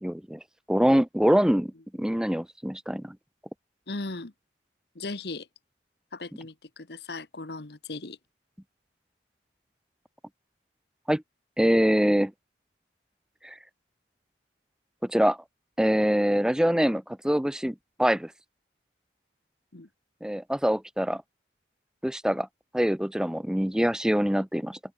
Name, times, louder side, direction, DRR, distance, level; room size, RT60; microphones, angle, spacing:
voice 1, 0.0-0.4 0.7-1.7 2.0-3.2 11.1-11.2 11.6-12.3 13.4-13.6 15.0-15.4 15.8-18.3 20.2-21.2 22.0-22.5 22.7-24.8, equal, 5° right, 0.4 m, -24 dB
voice 2, 3.9-4.3 4.9-5.5 6.1-8.2 19.7-19.9, left 3 dB, 65° left, 1.3 m, -37 dB
head